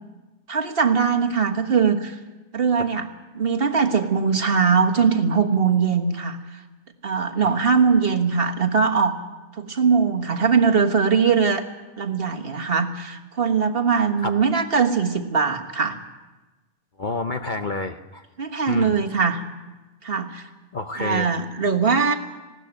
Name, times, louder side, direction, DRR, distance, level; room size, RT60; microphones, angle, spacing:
voice 1, 0.5-2.2 2.5-3.1 3.3-6.4 7.0-9.2 9.6-11.6 12.0-16.0 18.4-19.4 20.0-20.5 21.0-22.2, right 5 dB, 45° right, 4 dB, 1.6 m, -21 dB
voice 2, 17.0-18.2 18.7-19.0 20.7-21.3, left 3 dB, 45° left, 7 dB, 0.8 m, -28 dB
20.5 x 16.5 x 9.0 m, 1.2 s
omnidirectional pair, 1.4 m